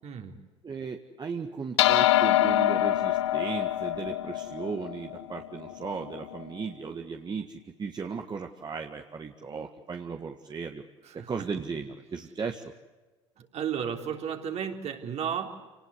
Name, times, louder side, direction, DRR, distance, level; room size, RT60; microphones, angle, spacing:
voice 1, 0.0-0.4 11.0-11.3 13.4-15.5, right 8 dB, 45° right, 4 dB, 3.5 m, -33 dB
voice 2, 0.6-10.8 11.1-12.6, right 5 dB, 30° right, 4 dB, 1.8 m, -36 dB
sound 1, 1.8-6.4, left 13 dB, 75° left, 0.8 m, -25 dB
28.5 x 19.5 x 8.2 m, 1.2 s
hypercardioid pair, 65°, 15 cm